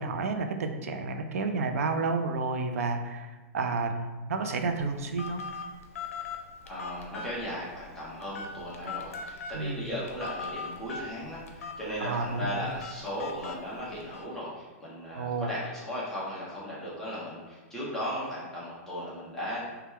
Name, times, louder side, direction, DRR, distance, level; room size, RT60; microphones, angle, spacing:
voice 1, 0.0-5.4 9.5-9.9 12.0-12.6 15.1-15.5, right 3 dB, 85° right, 6 dB, 0.5 m, -31 dB
Telephone, 4.4-14.2, left 4 dB, 85° left, 0.6 m, -41 dB
voice 2, 6.6-19.6, equal, 5° left, -8 dB, 0.7 m, -36 dB
3.3 x 2.3 x 4.2 m, 1.3 s
supercardioid pair, 170°, 8 cm